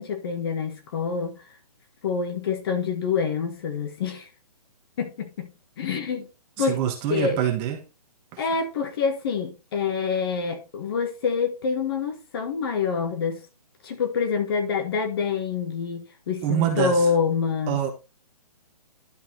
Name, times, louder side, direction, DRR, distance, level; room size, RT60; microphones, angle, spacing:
voice 1, 0.0-1.4 2.0-4.3 5.0-5.5 5.8-6.3 6.6-6.8 7.1-7.4 8.4-13.4 13.8-17.8, left 5 dB, 35° left, 1.5 m, -26 dB
voice 2, 6.7-7.8 16.4-16.9 17.7-17.9, right 9 dB, 20° right, 1.4 m, -24 dB
11.5 x 4.3 x 4.2 m
hypercardioid pair, 165°, 20 cm